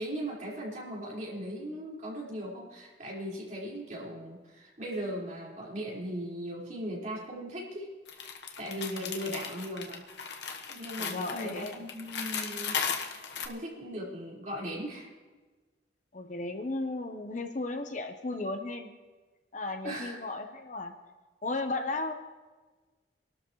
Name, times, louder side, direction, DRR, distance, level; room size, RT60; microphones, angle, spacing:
voice 1, 0.0-7.9 8.6-10.0 10.7-12.8 13.4-15.1 19.8-20.2, equal, 45° right, -5 dB, 4.9 m, -38 dB
sound 1, 8.1-13.5, left 6 dB, 80° left, 1.4 m, -36 dB
voice 2, 11.0-11.8 16.1-18.9 19.5-20.9 21.4-22.1, left 2 dB, 45° left, 6 dB, 1.0 m, -35 dB
25.5 x 12.5 x 3.2 m, 1.3 s
head